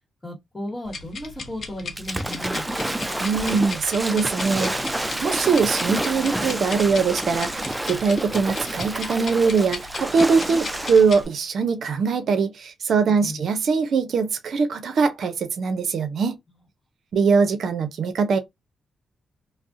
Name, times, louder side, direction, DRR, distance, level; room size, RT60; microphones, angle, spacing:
voice 1, 0.2-2.6 13.0-13.4, left 1 dB, 25° left, 1.2 m, -35 dB
sound 1, 0.8-11.2, left 4 dB, 60° left, 0.6 m, -37 dB
Waves surf / Splash splatter, 2.0-11.2, right 1 dB, 15° right, 0.4 m, -29 dB
voice 2, 3.2-16.4 17.1-18.4, right 5 dB, 70° right, 0.5 m, -22 dB
2.3 x 2.0 x 2.6 m
supercardioid pair, 50°, 0 cm